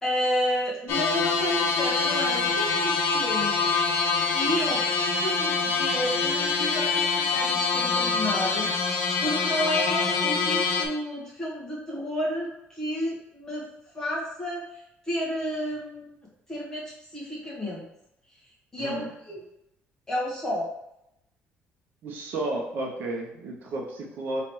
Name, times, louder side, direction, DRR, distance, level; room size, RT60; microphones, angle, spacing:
voice 1, 0.0-3.8 4.3-13.7 13.9-16.1 16.5-17.8 18.7-19.4 20.1-20.7, equal, 15° left, -6 dB, 1.4 m, -31 dB
sound 1, 0.9-10.9, left 4 dB, 75° left, 0.6 m, -25 dB
voice 2, 18.8-19.1 22.0-24.4, right 2 dB, 50° right, 0 dB, 0.8 m, -32 dB
4.9 x 3.1 x 3.0 m, 0.82 s
cardioid pair, 175°, 4 cm